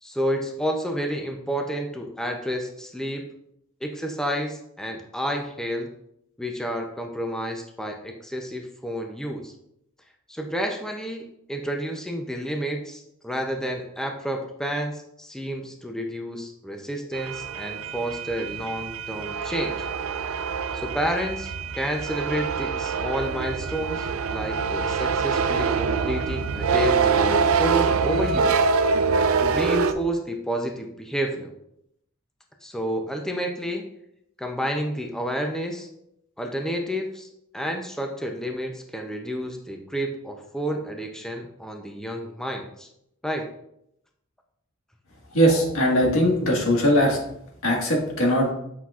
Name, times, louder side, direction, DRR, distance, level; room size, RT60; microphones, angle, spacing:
voice 1, 0.0-3.3 3.8-5.9 6.4-9.5 10.3-19.9 20.7-28.7 29.4-31.5 32.6-33.9 34.4-35.9 36.4-37.3 37.5-42.9 43.2-43.5, equal, 5° left, 2 dB, 0.5 m, -30 dB
sound 1, 17.1-29.9, right 5 dB, 90° right, 0.4 m, -25 dB
voice 2, 45.3-47.2 47.6-48.5, equal, 85° left, 0 dB, 1.6 m, -20 dB
8.1 x 5.7 x 2.4 m, 0.78 s
head